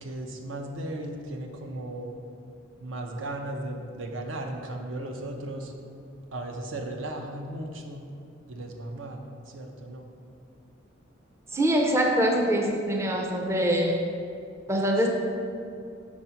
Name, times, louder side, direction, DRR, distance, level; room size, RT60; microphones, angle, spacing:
voice 1, 0.0-2.2 2.8-5.7 6.3-8.0 8.5-10.1, right 1 dB, 75° right, 3 dB, 0.6 m, -36 dB
voice 2, 11.5-14.1 14.7-15.1, equal, 15° right, 1 dB, 0.5 m, -24 dB
4.9 x 4.3 x 5.6 m, 2.4 s
head